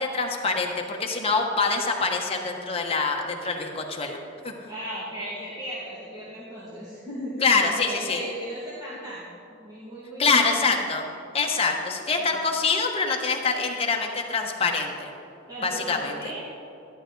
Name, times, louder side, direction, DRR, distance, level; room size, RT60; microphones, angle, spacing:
voice 1, 0.0-4.2 4.4-4.5 7.4-8.2 10.2-11.0 11.3-15.1 15.6-16.2, left 4 dB, 30° left, 1 dB, 1.2 m, -25 dB
voice 2, 4.7-10.9 12.3-12.4 15.5-16.5, equal, 20° right, -8 dB, 2.0 m, -37 dB
12.0 x 11.0 x 3.9 m, 2.7 s
head